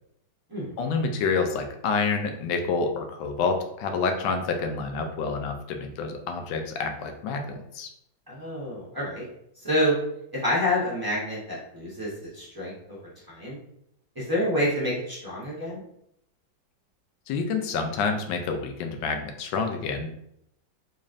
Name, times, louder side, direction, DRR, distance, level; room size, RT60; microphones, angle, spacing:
voice 1, 0.8-7.9 17.3-20.1, left 4 dB, 80° left, 4 dB, 1.3 m, -28 dB
voice 2, 8.3-9.2 9.6-9.9 10.3-13.0 13.3-13.6 14.2-15.8, left 1 dB, 30° right, -9 dB, 0.4 m, -28 dB
3.9 x 3.1 x 2.5 m, 0.75 s
omnidirectional pair, 2.1 m